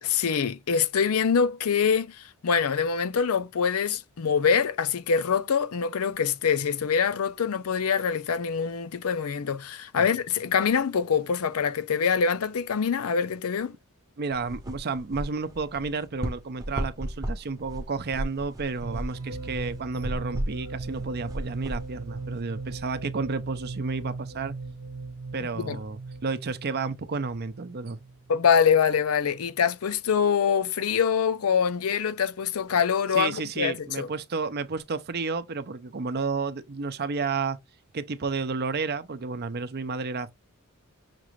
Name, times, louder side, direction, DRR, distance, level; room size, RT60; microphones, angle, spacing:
voice 1, 0.0-13.7 25.6-25.8 28.3-34.1, left 6 dB, 70° left, 0.5 m, -24 dB
voice 2, 14.2-24.5 25.3-28.0 33.1-37.6 37.9-40.3, right 4 dB, 45° right, 0.6 m, -31 dB
sound 1, 14.3-22.8, right 1 dB, 15° right, 0.8 m, -36 dB
sound 2, 18.8-28.5, right 3 dB, 70° right, 0.8 m, -38 dB
5.9 x 2.5 x 3.1 m
head